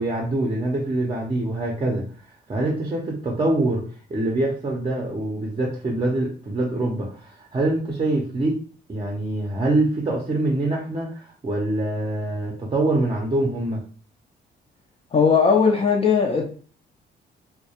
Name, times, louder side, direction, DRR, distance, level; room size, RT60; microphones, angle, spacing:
voice 1, 0.0-2.0 2.5-3.8 4.1-8.6 8.9-13.8, right 2 dB, 25° right, 0.6 m, -24 dB
voice 2, 15.1-16.4, left 5 dB, 30° left, 0.4 m, -18 dB
2.2 x 2.1 x 2.8 m
cardioid pair, 90°, 20 cm